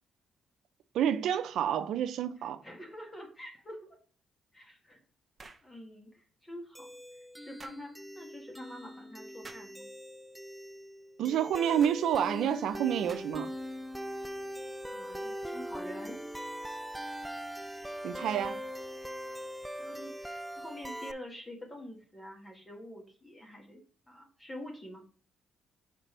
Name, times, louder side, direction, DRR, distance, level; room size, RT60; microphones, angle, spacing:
voice 1, 0.9-2.6 11.2-13.5 18.0-18.6, right 9 dB, 75° right, 0.6 m, -29 dB
voice 2, 2.4-3.8 4.5-5.0 5.6-6.9 7.1-9.9 14.9-16.2 19.8-25.0, equal, 25° left, 1.7 m, -47 dB
sound 1, 5.4-5.7 7.6-7.8 9.4-9.7 11.8-12.0 13.1-13.5, right 3 dB, 25° right, 0.9 m, -50 dB
sound 2, 6.7-21.1, equal, 5° right, 0.3 m, -41 dB
5.9 x 5.0 x 3.3 m
cardioid pair, 90°, 0 cm